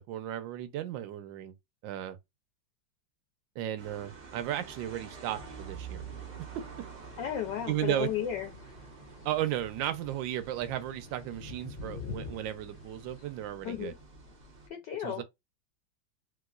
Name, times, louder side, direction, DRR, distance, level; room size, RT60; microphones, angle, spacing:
voice 1, 0.0-1.5 1.8-2.2 3.6-6.0 7.7-8.1 9.2-13.9 15.0-15.2, right 12 dB, 75° right, 1.3 m, -34 dB
sound 1, 3.8-14.7, right 6 dB, 35° right, 0.7 m, -48 dB
sound 2, 5.3-13.3, left 4 dB, 50° left, 0.8 m, -48 dB
voice 2, 7.2-8.7 13.6-14.0 14.7-15.2, left 10 dB, 70° left, 1.2 m, -34 dB
3.3 x 3.0 x 2.3 m
omnidirectional pair, 2.2 m